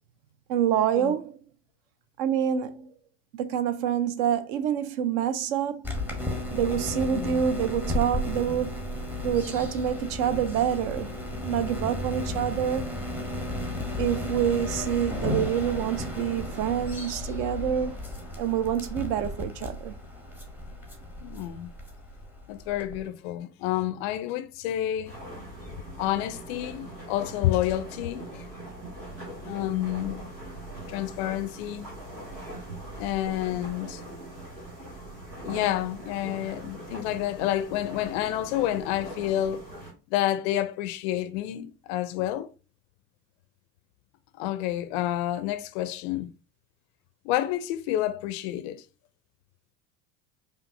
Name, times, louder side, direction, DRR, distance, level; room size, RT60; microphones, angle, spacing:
voice 1, 0.5-1.4 2.2-2.9 3.3-6.0 6.5-8.7 9.2-11.1 11.4-12.8 14.0-18.0 18.4-19.9, right 9 dB, 35° right, 0.4 m, -27 dB
sound 1, 5.8-23.1, left 1 dB, 5° right, 0.9 m, -34 dB
voice 2, 7.1-7.4 21.2-21.7 22.5-25.2 26.0-28.5 29.4-30.2 30.9-31.9 33.0-34.0 35.4-39.6 40.1-42.5 44.4-46.3 47.2-48.8, left 13 dB, 45° left, 0.5 m, -29 dB
sound 2, 25.0-39.9, right 1 dB, 85° right, 1.5 m, -41 dB
5.0 x 2.5 x 2.6 m
figure-of-eight pair, 70°, 48 cm